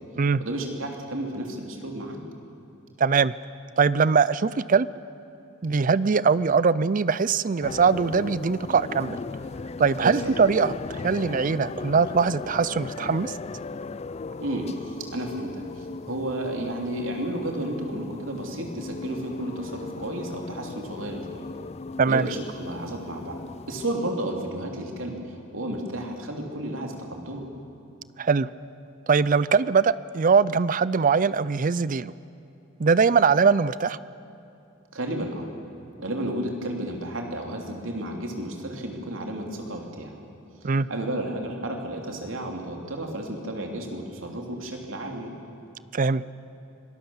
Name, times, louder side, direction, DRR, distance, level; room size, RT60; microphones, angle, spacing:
voice 1, 0.4-2.2 10.0-10.4 14.4-21.4 22.1-23.4 23.7-27.5 34.9-35.5 36.0-40.1 40.9-45.3, right 1 dB, 75° right, 2 dB, 3.2 m, -32 dB
voice 2, 3.0-3.3 3.8-4.9 5.6-9.2 9.8-10.7 11.0-13.3 22.0-22.3 28.2-28.5 29.1-32.1 32.8-34.0 40.6-40.9 45.9-46.2, right 5 dB, 40° right, 18 dB, 0.5 m, -21 dB
sound 1, 7.6-24.0, left 3 dB, 30° left, 0.4 m, -37 dB
25.5 x 19.0 x 7.2 m, 2.9 s
head